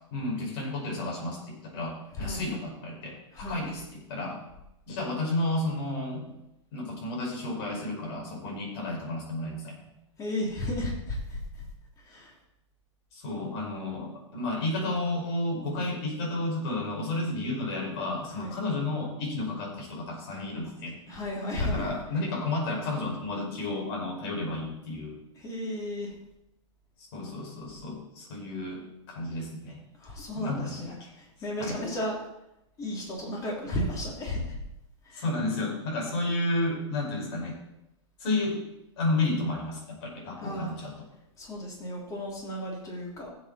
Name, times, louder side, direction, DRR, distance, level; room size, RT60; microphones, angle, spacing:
voice 1, 0.1-4.4 4.9-6.3 6.7-9.9 13.1-21.0 21.6-25.2 27.0-29.8 30.3-31.1 31.6-31.8 35.1-37.6 38.2-38.6 39.0-41.0, left 2 dB, 55° left, -1 dB, 5.4 m, -32 dB
voice 2, 3.3-3.6 10.2-11.6 12.0-12.3 18.3-18.6 21.1-21.9 25.3-26.1 30.0-32.2 32.8-34.6 35.0-35.2 40.4-40.8 41.4-43.3, left 1 dB, 20° left, -1 dB, 3.1 m, -34 dB
15.5 x 7.8 x 4.2 m, 0.86 s
hypercardioid pair, 145°, 16 cm